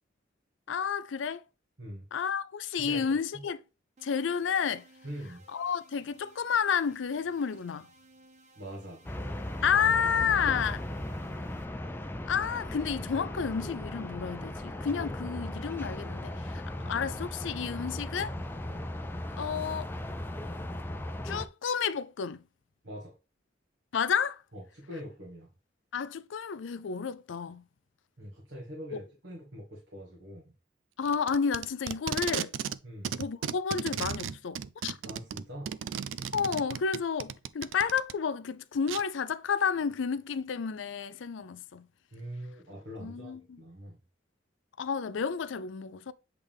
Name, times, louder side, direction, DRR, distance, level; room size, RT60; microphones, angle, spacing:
voice 1, 0.7-1.4 2.1-3.6 4.0-4.9 5.5-7.9 9.6-10.8 12.3-18.4 19.4-19.9 21.2-22.4 23.9-24.4 25.9-27.6 28.9-29.0 31.0-32.5 33.2-35.0 36.3-41.9 43.0-43.6 44.8-46.1, left 6 dB, 75° left, 0.4 m, -31 dB
voice 2, 2.8-3.4 5.0-5.4 8.5-9.0 10.3-10.7 16.8-17.0 18.6-18.9 22.8-23.1 24.5-25.5 28.2-30.5 32.8-33.2 35.0-35.8 42.1-44.0, equal, 65° right, 1.6 m, -43 dB
sound 1, 4.0-11.6, right 1 dB, 40° right, 0.8 m, -59 dB
sound 2, 9.0-21.5, left 1 dB, 10° left, 0.5 m, -37 dB
Packing tape duct tape, 31.0-32.8 33.0-38.1 38.9-39.0, right 8 dB, 85° right, 0.4 m, -35 dB
8.1 x 3.4 x 3.5 m
head